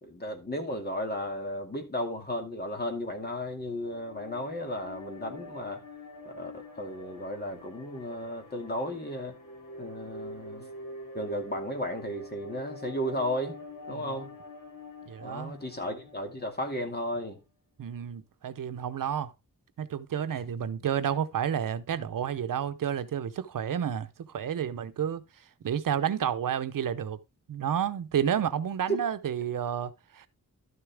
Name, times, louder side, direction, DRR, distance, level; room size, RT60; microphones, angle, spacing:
voice 1, 0.0-5.8 6.3-9.4 9.8-10.6 11.1-13.6 13.9-14.3 15.2-17.4, left 1 dB, 30° left, 2.3 m, -34 dB
sound 1, 3.5-16.9, left 1 dB, 70° left, 2.6 m, -45 dB
voice 2, 15.1-15.5 17.8-19.3 19.8-25.2 25.6-27.2 27.5-30.3, right 9 dB, 75° right, 0.8 m, -30 dB
12.5 x 6.8 x 3.4 m
wide cardioid pair, 150°, 33 cm